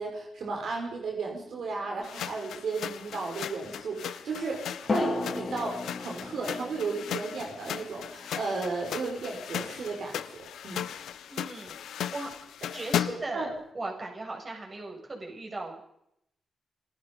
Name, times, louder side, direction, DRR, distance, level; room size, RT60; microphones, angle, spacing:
voice 1, 0.0-10.9 13.3-13.5, right 4 dB, 75° right, 1 dB, 5.5 m, -34 dB
sound 1, 1.3-2.5 4.9-8.9 9.1-9.2, left 3 dB, 45° left, 3.5 m, -36 dB
sound 2, 2.0-13.4, left 10 dB, 90° left, 1.1 m, -37 dB
voice 2, 11.3-11.8 12.1-12.3 12.7-13.5 13.7-15.8, right 2 dB, 35° right, 1 dB, 7.4 m, -37 dB
27.0 x 19.0 x 5.5 m, 0.77 s
cardioid pair, 70°, 0 cm